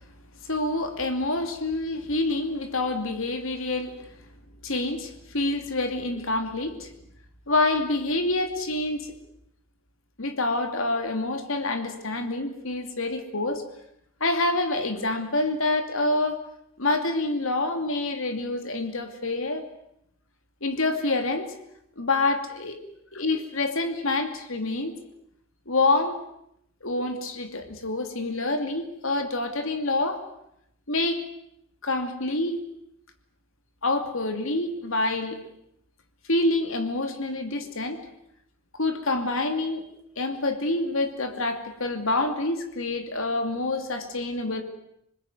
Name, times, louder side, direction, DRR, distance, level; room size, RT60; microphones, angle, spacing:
voice 1, 0.4-4.0 4.6-6.9 7.5-9.1 10.2-13.6 14.2-16.4 16.8-19.7 20.6-21.5 22.0-22.8 23.1-24.9 25.7-26.2 26.8-30.2 30.9-31.2 31.8-32.6 33.8-35.4 36.3-38.0 38.8-39.8 40.2-44.6, left 2 dB, 70° left, 7 dB, 2.8 m, -27 dB
27.0 x 20.5 x 9.4 m, 0.76 s
head